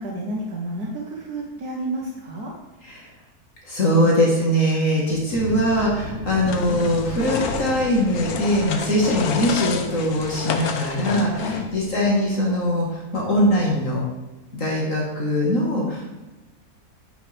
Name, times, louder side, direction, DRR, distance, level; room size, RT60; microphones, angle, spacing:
voice 1, 0.0-2.5 11.4-11.7, right 1 dB, 80° right, -3 dB, 1.8 m, -30 dB
voice 2, 3.6-14.0 14.5-16.1, equal, 55° left, -3 dB, 2.0 m, -21 dB
sound 1, 5.3-12.1, equal, 30° left, 2.0 m, -36 dB
sound 2, 6.4-11.9, left 6 dB, 75° left, 1.3 m, -30 dB
9.4 x 8.1 x 3.4 m, 1.1 s
omnidirectional pair, 1.6 m